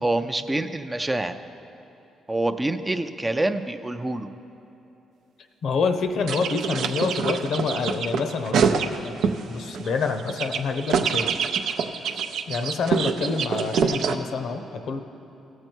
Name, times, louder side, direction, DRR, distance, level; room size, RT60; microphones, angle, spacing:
voice 1, 0.0-1.4 2.3-4.3, right 2 dB, 15° right, 8 dB, 0.4 m, -26 dB
voice 2, 5.6-9.2 9.5-11.3 12.5-15.0, left 4 dB, 70° left, 7 dB, 0.7 m, -27 dB
sound 1, 6.3-9.4 9.7-14.2, right 6 dB, 75° right, 0.5 m, -25 dB
16.0 x 6.6 x 4.5 m, 3.0 s
cardioid pair, 90°, 0 cm